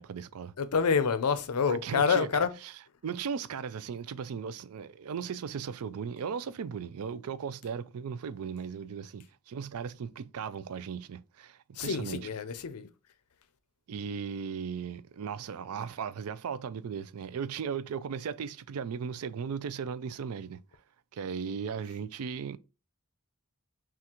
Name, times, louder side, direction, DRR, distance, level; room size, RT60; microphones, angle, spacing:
voice 1, 0.0-0.5 1.7-12.3 13.9-20.6 21.1-22.6, right 6 dB, 70° right, 0.4 m, -37 dB
voice 2, 0.6-2.5 11.8-12.9, left 6 dB, 80° left, 0.5 m, -27 dB
5.9 x 2.4 x 2.9 m
head